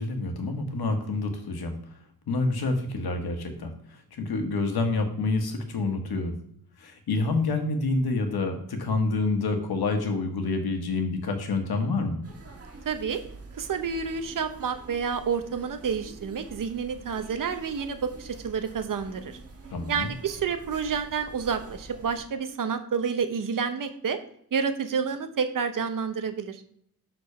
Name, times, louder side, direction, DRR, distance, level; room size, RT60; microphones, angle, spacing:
voice 1, 0.0-1.7 2.3-6.4 6.8-12.2 19.7-20.1, left 3 dB, 90° left, 5 dB, 1.3 m, -28 dB
sound 1, 12.2-22.2, right 2 dB, 40° right, 1.3 m, -46 dB
voice 2, 12.9-13.2 13.6-19.4 19.9-24.2 24.5-26.6, right 6 dB, 60° right, 8 dB, 0.8 m, -29 dB
6.7 x 4.0 x 5.4 m, 0.66 s
wide cardioid pair, 105°, 36 cm